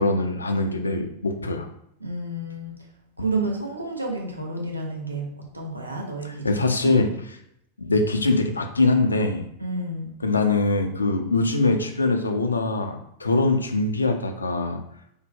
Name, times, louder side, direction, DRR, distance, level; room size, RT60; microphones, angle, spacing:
voice 1, 0.0-1.7 6.2-7.1 7.8-9.5 10.2-14.8, left 3 dB, 80° left, 5 dB, 0.4 m, -23 dB
voice 2, 2.0-2.7 3.2-5.3 5.5-6.9 9.6-10.1, right 2 dB, 85° right, -1 dB, 0.8 m, -30 dB
3.5 x 2.1 x 3.6 m, 0.74 s
figure-of-eight pair, 90°, 0 cm